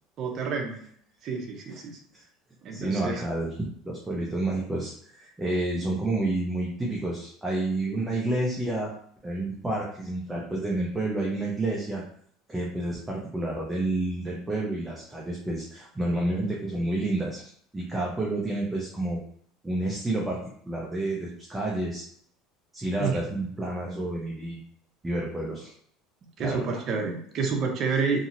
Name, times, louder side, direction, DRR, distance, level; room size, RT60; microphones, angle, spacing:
voice 1, 0.2-0.8 1.2-2.0 2.6-3.2 23.0-23.2 26.4-28.3, right 5 dB, 45° right, 1 dB, 0.8 m, -29 dB
voice 2, 2.7-8.9 9.2-12.0 12.5-17.4 17.7-19.2 19.6-20.4 20.7-22.1 22.7-24.6 25.0-25.7 26.4-26.8, right 2 dB, 10° right, -3 dB, 0.8 m, -29 dB
2.8 x 2.7 x 2.6 m, 0.62 s
supercardioid pair, 110°, 0 cm